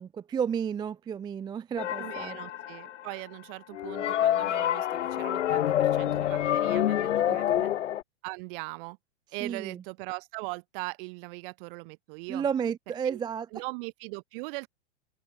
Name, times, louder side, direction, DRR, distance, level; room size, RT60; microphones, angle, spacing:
voice 1, 0.0-2.4 7.3-7.7 9.4-9.8 12.3-13.5, right 7 dB, 10° right, 0.5 m, -32 dB
sound 1, 1.8-3.1 3.7-8.0, left 11 dB, 75° left, 0.8 m, -27 dB
voice 2, 2.0-7.7 8.2-9.0 9.3-12.5 13.0-13.2 13.5-14.7, right 29 dB, 45° right, 2.3 m, -40 dB
hypercardioid pair, 110°, 36 cm